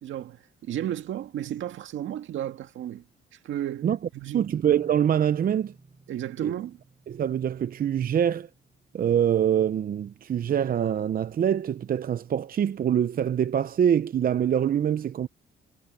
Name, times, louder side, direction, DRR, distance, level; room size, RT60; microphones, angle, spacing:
voice 1, 0.0-3.1 3.3-4.5 6.1-6.8, right 11 dB, 75° right, 1.9 m, -33 dB
voice 2, 4.3-5.7 6.4-6.5 7.1-8.5 8.9-15.3, right 9 dB, 45° right, 0.6 m, -24 dB
sound 1, 4.7-10.3, right 4 dB, 30° right, 5.6 m, -55 dB
cardioid pair, 90°, 20 cm